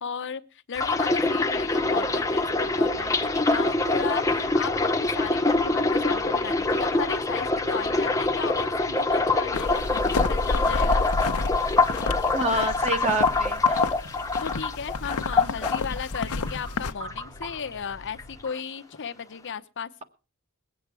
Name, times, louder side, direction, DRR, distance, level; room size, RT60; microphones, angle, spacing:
voice 1, 0.0-11.0 14.4-20.0, left 6 dB, 55° left, 0.7 m, -35 dB
sound 1, 0.7-18.4, left 1 dB, 65° right, 6.7 m, -46 dB
sound 2, 0.8-16.7 17.0-17.9 18.2-18.5, left 3 dB, 15° left, 0.9 m, -25 dB
sound 3, 9.5-16.9, left 3 dB, 85° left, 0.8 m, -30 dB
voice 2, 12.3-13.9, right 1 dB, 30° right, 1.5 m, -27 dB
21.5 x 8.1 x 4.6 m
head